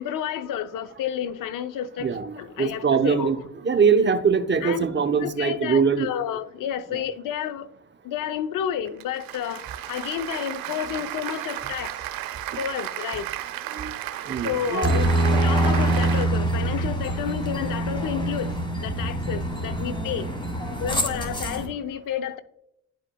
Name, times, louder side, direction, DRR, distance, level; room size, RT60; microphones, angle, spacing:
voice 1, 0.0-2.1 2.4-3.3 4.6-4.9 5.2-7.7 8.0-12.1 12.6-13.3 14.4-15.0 15.3-20.3 20.8-22.4, left 9 dB, 65° left, 12 dB, 0.7 m, -30 dB
voice 2, 2.0-6.1 6.9-7.0 13.7-13.9 14.3-15.1, right 6 dB, 30° right, 8 dB, 0.8 m, -23 dB
Applause, 8.9-16.3, right 12 dB, 75° right, 0.8 m, -34 dB
Aircraft, 14.8-21.7, right 1 dB, 15° left, 2.1 m, -25 dB
11.0 x 5.0 x 2.2 m, 0.77 s
supercardioid pair, 65°, 35 cm